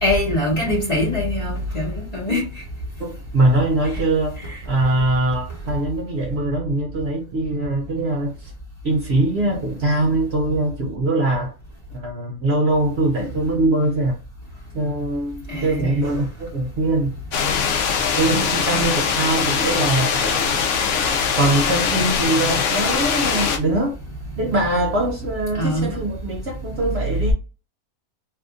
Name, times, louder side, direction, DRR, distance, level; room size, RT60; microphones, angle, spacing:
voice 1, 0.0-2.5 4.4-4.6 15.5-15.9 18.3-18.6 25.6-25.9, left 1 dB, 30° left, 1.1 m, -23 dB
voice 2, 3.0-4.4 4.7-8.5 8.8-11.5 11.9-14.2 14.7-17.1 18.2-20.5 21.3-24.0 24.4-27.3, right 2 dB, 55° right, 0.8 m, -22 dB
sound 1, 17.3-23.6, left 6 dB, 65° left, 0.9 m, -21 dB
2.7 x 2.5 x 3.6 m
omnidirectional pair, 1.5 m